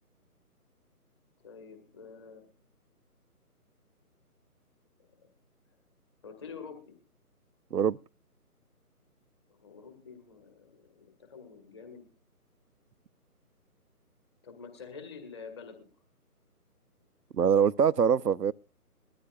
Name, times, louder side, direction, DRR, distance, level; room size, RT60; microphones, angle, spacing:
voice 1, 1.4-2.5 5.1-5.2 6.2-6.9 9.5-12.1 14.4-15.9, left 5 dB, 15° left, 2.0 m, -47 dB
voice 2, 17.3-18.5, right 7 dB, 90° right, 0.6 m, -24 dB
21.5 x 13.5 x 2.5 m
figure-of-eight pair, 150°, 46 cm